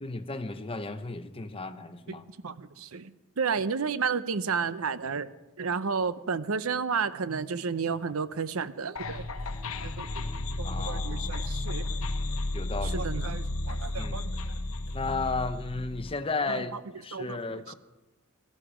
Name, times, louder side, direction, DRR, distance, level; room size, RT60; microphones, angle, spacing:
voice 1, 0.0-2.3 10.6-11.4 12.5-13.1 14.0-14.3 14.9-17.7, left 3 dB, 25° left, 10 dB, 0.8 m, -34 dB
voice 2, 2.4-9.3 9.8-10.1 10.6-12.0 12.8-14.4 16.5-16.6 17.1-17.4 17.7-17.8, right 5 dB, 75° right, 14 dB, 0.7 m, -32 dB
sound 1, 9.0-16.1, left 2 dB, 70° left, 1.0 m, -33 dB
17.5 x 13.0 x 5.1 m, 1.1 s
head